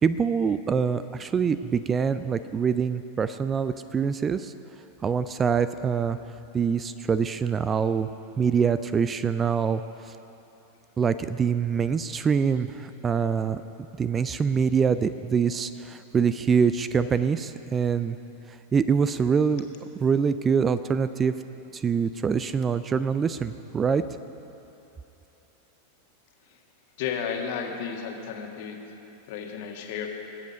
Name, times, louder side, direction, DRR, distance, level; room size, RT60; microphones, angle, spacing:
voice 1, 0.0-4.5 5.0-6.2 6.5-8.1 8.4-10.2 11.0-13.6 14.0-18.2 18.5-19.7 20.0-21.3 21.7-24.0, right 6 dB, 20° right, 13 dB, 0.3 m, -25 dB
voice 2, 27.0-28.8 29.3-30.1, left 7 dB, 50° left, 2 dB, 1.6 m, -33 dB
21.0 x 8.3 x 5.2 m, 2.9 s
figure-of-eight pair, 90°, 0 cm